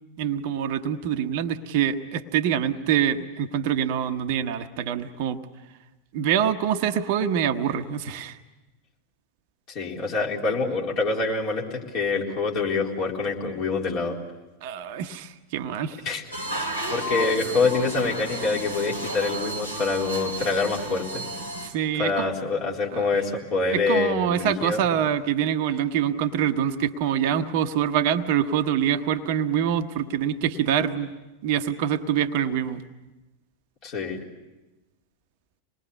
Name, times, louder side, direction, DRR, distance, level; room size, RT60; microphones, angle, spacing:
voice 1, 0.2-5.4 6.1-8.4 14.6-16.0 21.6-22.3 22.9-23.2 23.7-31.1 31.4-32.8, right 9 dB, 50° right, 8 dB, 1.0 m, -25 dB
voice 2, 9.7-14.2 16.0-16.2 16.9-21.2 22.0-24.8 33.8-34.2, left 4 dB, 40° left, -2 dB, 4.0 m, -26 dB
sound 1, 16.3-21.7, right 1 dB, 90° left, 3.0 m, -32 dB
26.0 x 20.5 x 8.3 m, 1.1 s
figure-of-eight pair, 90°, 0 cm